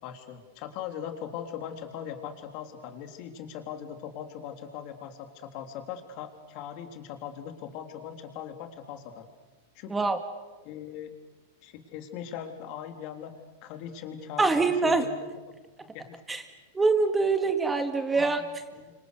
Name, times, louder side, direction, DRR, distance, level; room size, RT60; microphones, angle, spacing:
voice 1, 0.0-9.3 9.8-10.0 10.6-11.1 11.6-13.4 13.6-15.6 15.9-16.2 18.1-18.9, left 9 dB, 50° left, 6 dB, 3.6 m, -40 dB
voice 2, 14.4-15.0 16.3-16.4 16.7-18.4, right 3 dB, 10° right, 8 dB, 2.1 m, -24 dB
30.0 x 26.0 x 6.7 m, 1.3 s
supercardioid pair, 130°, 0 cm